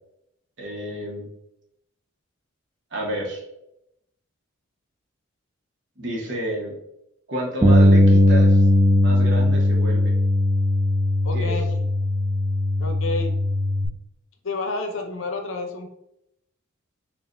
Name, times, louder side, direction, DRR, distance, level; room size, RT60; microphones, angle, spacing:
voice 1, 0.6-1.3 2.9-3.4 6.0-6.8 7.3-8.6 9.0-10.1 11.3-11.5, equal, 65° right, -2 dB, 1.1 m, -30 dB
Bass guitar, 7.6-13.9, left 1 dB, 15° right, 0.4 m, -18 dB
voice 2, 11.2-11.9 12.8-13.3 14.4-15.9, left 3 dB, 75° left, 4 dB, 0.6 m, -30 dB
5.1 x 2.5 x 2.6 m, 0.82 s
head